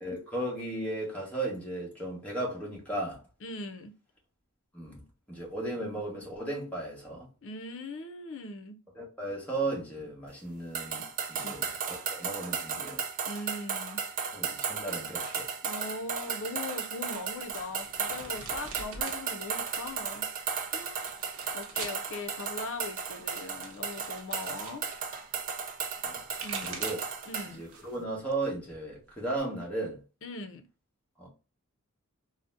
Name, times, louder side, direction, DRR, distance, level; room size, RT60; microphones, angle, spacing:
voice 1, 0.0-3.2 4.7-5.0 5.3-7.3 8.9-13.1 14.3-15.5 26.0-26.2 26.6-27.0 27.5-30.0 31.2-31.3, right 2 dB, 5° left, 1.1 m, -35 dB
voice 2, 3.4-3.9 7.4-8.8 11.4-11.6 13.3-14.0 15.6-20.3 20.6-21.2 21.5-24.8 26.4-26.8 27.3-27.6 30.2-30.6, left 2 dB, 60° left, 0.5 m, -40 dB
sound 1, 10.7-27.5, right 6 dB, 40° right, 0.4 m, -35 dB
sound 2, 17.5-19.2 19.5-20.2 20.9-22.0 23.0-24.8 26.0-27.2 27.6-28.1 28.4-29.4, right 4 dB, 70° right, 0.8 m, -44 dB
3.9 x 2.1 x 2.5 m
head